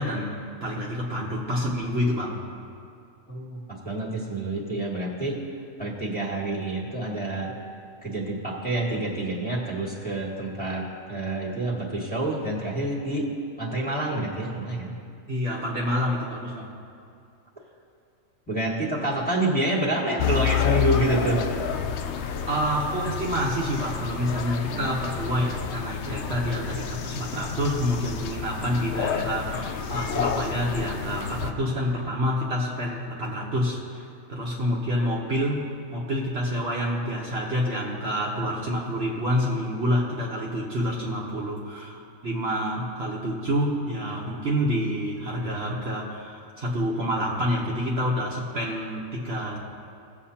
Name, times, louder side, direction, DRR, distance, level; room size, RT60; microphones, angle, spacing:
voice 1, 0.0-2.4 15.3-16.7 22.5-49.6, equal, 50° right, -4 dB, 1.2 m, -28 dB
voice 2, 3.3-5.4 5.8-7.5 8.0-10.8 11.1-13.3 13.6-14.9 18.5-21.4 24.7-24.9 34.6-34.7, right 2 dB, 5° left, -6 dB, 1.7 m, -28 dB
sound 1, 20.2-31.5, left 8 dB, 65° left, 0.7 m, -29 dB
18.5 x 7.2 x 2.8 m, 2.5 s
omnidirectional pair, 1.4 m